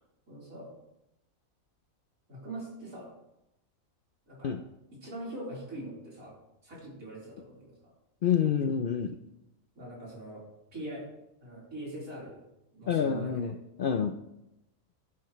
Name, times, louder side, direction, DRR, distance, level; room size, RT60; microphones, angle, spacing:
voice 1, 0.3-0.7 2.3-3.1 4.3-4.5 4.9-6.3 6.6-7.7 9.8-11.1 11.4-12.4 12.7-13.5, right 1 dB, 75° right, -6 dB, 4.3 m, -42 dB
voice 2, 8.2-9.1 12.9-13.5 13.8-14.1, left 8 dB, 65° left, 8 dB, 0.5 m, -27 dB
11.0 x 10.0 x 3.1 m, 0.88 s
omnidirectional pair, 1.5 m